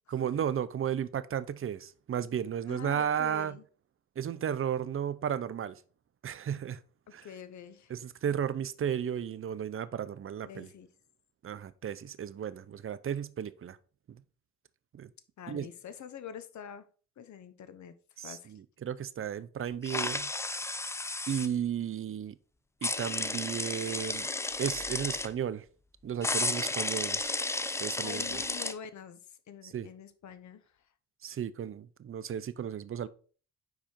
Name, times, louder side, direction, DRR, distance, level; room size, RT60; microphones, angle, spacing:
voice 1, 0.1-3.6 4.2-5.8 6.2-6.8 7.1-7.3 7.9-10.7 11.4-13.8 14.1-14.2 14.9-15.1 15.5-15.7 18.2-20.3 21.3-22.3 22.8-24.3 24.6-25.6 26.0-27.3 27.8-28.4 29.6-29.9 31.2-33.1, right 9 dB, 40° right, 0.6 m, -34 dB
voice 2, 2.7-3.6 7.2-7.9 10.5-10.9 15.4-16.8 17.2-17.9 18.2-18.5 28.0-29.2 29.5-30.6, left 8 dB, 55° left, 0.9 m, -45 dB
sound 1, 19.8-21.5 22.8-25.3 26.2-28.7, left 2 dB, 10° left, 0.3 m, -33 dB
5.1 x 4.8 x 4.4 m
cardioid pair, 75°, 35 cm